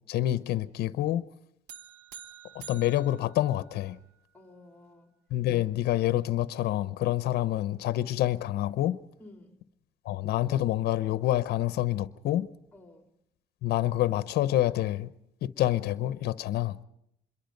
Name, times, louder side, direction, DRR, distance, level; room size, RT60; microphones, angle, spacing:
voice 1, 0.1-1.2 2.5-4.0 5.3-9.0 10.0-12.5 13.6-15.1 15.4-16.8, left 14 dB, 70° left, 0.8 m, -27 dB
sound 1, 1.7-4.2, right 8 dB, 85° right, 1.3 m, -48 dB
voice 2, 4.3-5.1 9.2-9.6 12.7-13.1, left 2 dB, 10° left, 3.0 m, -52 dB
26.0 x 22.5 x 5.3 m
cardioid pair, 110°, 17 cm